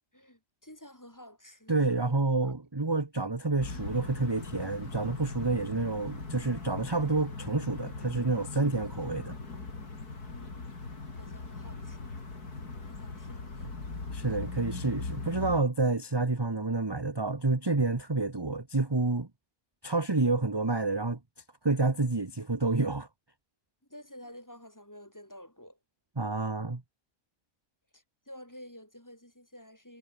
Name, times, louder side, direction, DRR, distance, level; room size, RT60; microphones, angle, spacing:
voice 1, 0.1-2.2 2.4-2.5 10.3-10.6 11.2-12.1 12.8-13.8 23.9-25.8 27.9-30.0, equal, 10° left, 2.7 m, -51 dB
voice 2, 1.7-9.3 14.1-19.3 19.8-21.2 21.6-23.1 26.2-26.8, right 3 dB, 15° right, 1.2 m, -29 dB
sound 1, 3.6-15.6, left 3 dB, 90° left, 4.3 m, -40 dB
omnidirectional pair, 1.6 m